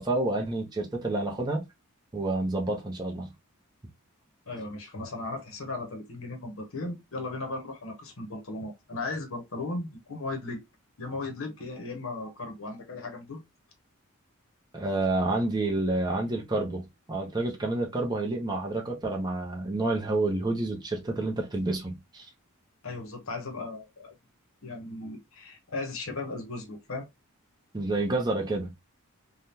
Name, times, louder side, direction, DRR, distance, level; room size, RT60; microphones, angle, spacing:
voice 1, 0.0-1.6 2.1-3.3 14.7-22.3 27.7-28.7, right 2 dB, 20° right, 0.6 m, -29 dB
voice 2, 4.5-10.6 11.0-13.4 22.8-24.1 24.6-27.1, left 2 dB, 65° left, 0.8 m, -36 dB
3.5 x 2.2 x 2.7 m
head